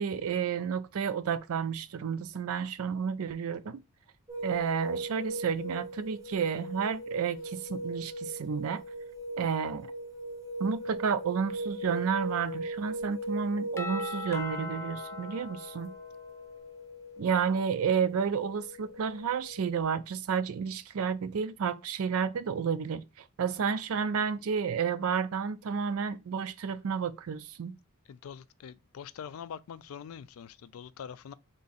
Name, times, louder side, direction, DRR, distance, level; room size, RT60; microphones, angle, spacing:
voice 1, 0.0-3.8 4.4-8.8 9.4-9.9 10.6-15.9 17.2-27.7, right 6 dB, 90° right, 0.4 m, -31 dB
sound 1, 4.3-19.8, right 1 dB, 15° right, 0.8 m, -39 dB
Doorbell, 13.8-16.6, left 3 dB, 15° left, 0.4 m, -40 dB
voice 2, 28.1-31.3, left 7 dB, 85° left, 0.3 m, -44 dB
3.7 x 2.6 x 4.0 m
head